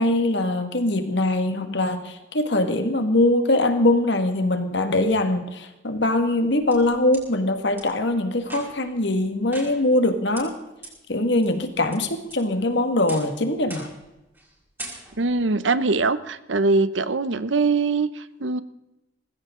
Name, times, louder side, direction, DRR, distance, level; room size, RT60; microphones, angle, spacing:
voice 1, 0.0-10.5 11.1-13.9, left 1 dB, 65° left, 7 dB, 1.9 m, -22 dB
sound 1, 6.3-7.2 7.8-7.9 8.4-8.9 9.5-10.1 10.3-10.4 10.8-10.9 11.4-12.0 12.3-12.7 13.1-13.3 13.7-14.0 14.3-14.5 14.8-15.3, right 2 dB, 10° right, 5.6 m, -40 dB
voice 2, 15.2-18.6, right 3 dB, 75° right, 14 dB, 0.8 m, -22 dB
19.5 x 15.5 x 3.8 m, 0.97 s
head